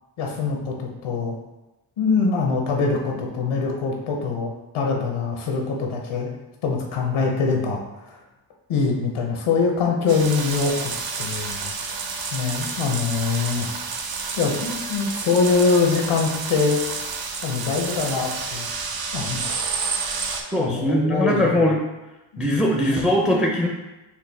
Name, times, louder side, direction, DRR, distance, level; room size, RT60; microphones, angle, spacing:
voice 1, 0.2-1.4 2.0-6.3 6.6-8.2 8.7-10.9 11.2-12.0 12.3-13.7 14.4-16.8 17.4-18.7 19.1-19.5 20.5-21.7 22.3-22.5 22.9-23.1, left 4 dB, 85° left, 1 dB, 0.8 m, -24 dB
sound 1, 10.1-20.4, right 5 dB, 50° right, 0.6 m, -30 dB
voice 2, 20.5-21.8 22.4-23.7, equal, ahead, 0 dB, 0.5 m, -20 dB
4.4 x 2.2 x 3.4 m, 1.0 s
cardioid pair, 80°, 48 cm